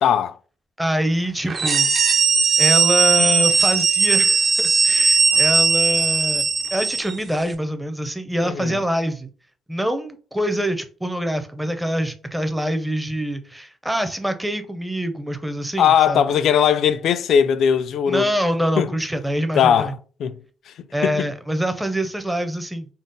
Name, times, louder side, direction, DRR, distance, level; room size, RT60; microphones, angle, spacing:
voice 1, 0.0-0.3 8.4-8.8 15.8-18.3 18.8-18.9 19.5-20.4 20.7-20.8 21.0-21.3, left 8 dB, 70° left, 0.3 m, -19 dB
voice 2, 0.8-1.9 2.6-6.4 6.7-9.3 9.7-16.2 18.1-19.9 20.9-22.9, equal, 5° right, 0.6 m, -25 dB
sound 1, 1.5-7.2, right 5 dB, 45° right, 0.6 m, -18 dB
3.8 x 2.0 x 3.8 m
cardioid pair, 90°, 0 cm